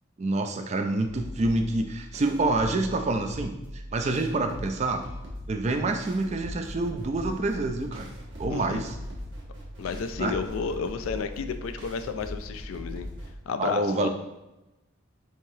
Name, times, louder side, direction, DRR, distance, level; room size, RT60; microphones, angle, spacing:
voice 1, 0.2-3.6 3.9-5.1 5.5-8.1 8.4-9.0 10.2-10.3 13.6-14.1, right 2 dB, 35° right, 5 dB, 0.3 m, -27 dB
sound 1, 1.0-13.4, equal, 65° right, 1.0 m, -40 dB
voice 2, 8.5-8.9 9.8-13.1 13.5-14.1, left 5 dB, 85° left, 10 dB, 0.3 m, -32 dB
4.6 x 2.7 x 2.7 m, 0.97 s
head